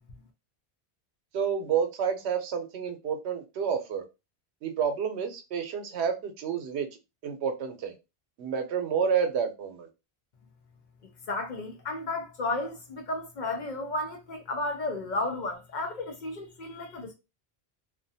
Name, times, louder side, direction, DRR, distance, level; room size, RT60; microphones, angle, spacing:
voice 1, 1.3-4.0 4.6-6.9 7.2-7.9 8.4-9.9, right 7 dB, 85° right, 0.9 m, -29 dB
voice 2, 11.3-17.1, left 2 dB, 55° left, 0.6 m, -33 dB
2.4 x 2.1 x 2.6 m
omnidirectional pair, 1.1 m